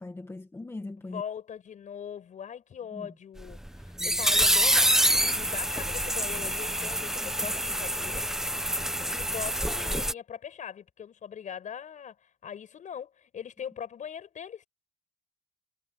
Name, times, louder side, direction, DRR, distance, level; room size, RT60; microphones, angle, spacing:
voice 1, 0.0-1.2 2.9-3.2 4.0-4.3 7.2-7.5, left 2 dB, 15° left, 1.5 m, -41 dB
voice 2, 1.1-8.2 9.1-14.7, left 8 dB, 45° left, 6.8 m, -41 dB
sound 1, 3.4-10.1, right 1 dB, 5° right, 1.0 m, -26 dB
cardioid pair, 110°, 17 cm